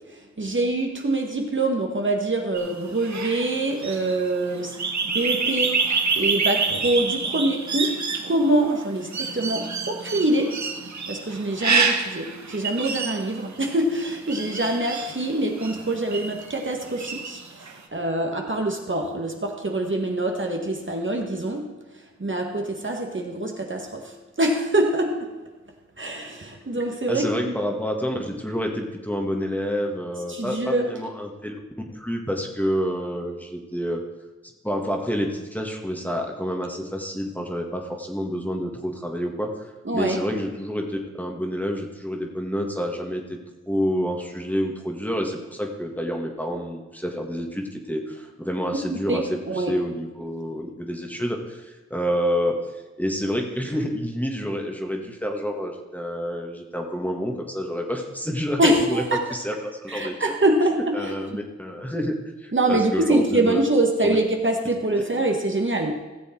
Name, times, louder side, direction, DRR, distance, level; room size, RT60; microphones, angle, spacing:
voice 1, 0.0-4.8 5.0-10.7 11.1-25.3 26.0-27.5 30.3-30.9 39.8-40.3 48.9-49.8 58.6-59.2 59.9-61.2 62.5-65.9, right 1 dB, 40° right, 2 dB, 1.6 m, -25 dB
sound 1, 2.5-16.6 17.0-17.7, right 4 dB, 70° right, 1.1 m, -27 dB
voice 2, 27.1-31.6 31.9-34.0 34.6-39.5 39.9-43.4 43.7-52.6 53.0-59.6 59.9-60.1 60.5-60.6 60.9-62.2 62.4-63.6 64.0-64.2, equal, 5° left, 1 dB, 1.8 m, -28 dB
16.0 x 7.1 x 4.5 m, 1.2 s
cardioid pair, 50°, 29 cm